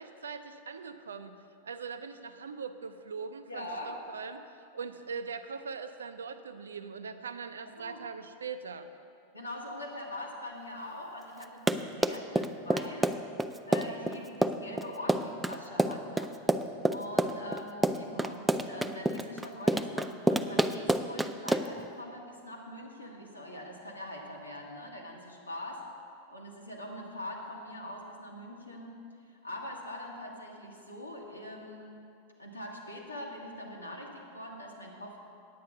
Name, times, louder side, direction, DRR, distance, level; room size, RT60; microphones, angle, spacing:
voice 1, 0.0-1.3 1.6-4.4 4.7-8.9, right 5 dB, 70° right, 9 dB, 0.5 m, -41 dB
voice 2, 3.5-4.0 7.8-8.0 9.3-13.1 13.7-16.3 16.9-25.8 26.3-29.0 29.3-32.0 32.4-35.2, left 1 dB, 80° left, -1 dB, 1.5 m, -43 dB
Run, 11.4-21.8, right 1 dB, 5° right, 0.4 m, -28 dB
9.4 x 8.6 x 5.3 m, 2.5 s
figure-of-eight pair, 90°, 0 cm